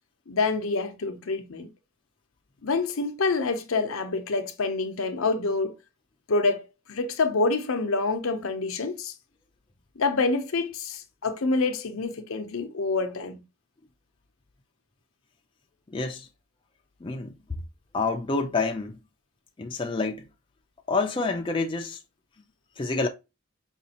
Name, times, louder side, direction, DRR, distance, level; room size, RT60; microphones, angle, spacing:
voice 1, 0.3-1.7 2.6-5.7 6.3-9.1 10.0-13.4, left 3 dB, 75° left, 0.7 m, -27 dB
voice 2, 15.9-16.3 17.0-17.3 17.9-19.0 19.6-20.3 20.9-22.0 22.8-23.1, left 3 dB, 25° left, 0.4 m, -28 dB
5.0 x 2.4 x 2.8 m
head